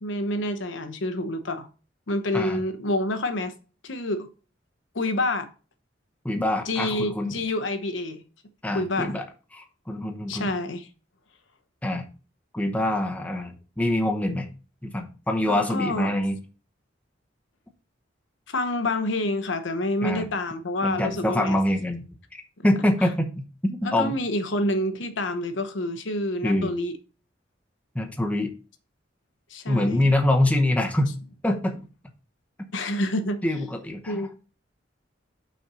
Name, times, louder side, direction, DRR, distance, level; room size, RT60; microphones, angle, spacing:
voice 1, 0.0-1.7 2.1-3.5 3.8-4.3 4.9-5.5 6.7-8.2 8.7-9.2 10.3-10.9 15.5-16.1 18.5-21.6 23.8-27.0 29.5-30.1 32.7-33.4 34.1-34.3, left 1 dB, 75° left, 0.9 m, -28 dB
voice 2, 6.2-7.3 8.6-9.2 9.5-10.5 11.8-12.1 12.5-14.5 14.8-16.4 20.0-20.3 20.8-22.1 22.6-24.2 26.4-26.7 27.9-28.5 29.7-31.2 31.4-31.8 33.4-34.3, left 1 dB, 10° left, 0.8 m, -25 dB
5.8 x 4.3 x 6.1 m
head